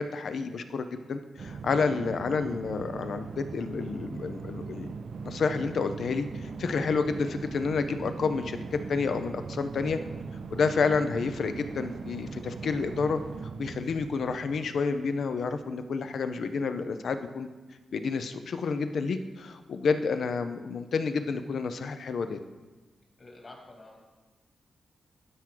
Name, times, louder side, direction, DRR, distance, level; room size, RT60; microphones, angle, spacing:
voice 1, 0.0-4.9 5.2-8.6 8.9-10.0 10.5-13.2 13.6-17.5 17.9-22.4, left 5 dB, 75° left, 9 dB, 0.5 m, -29 dB
sound 1, 1.4-15.8, right 5 dB, 70° right, 0.3 m, -40 dB
voice 2, 23.2-24.0, left 2 dB, 50° left, 0 dB, 2.4 m, -48 dB
12.0 x 4.6 x 3.8 m, 1.3 s
cardioid pair, 55°, 0 cm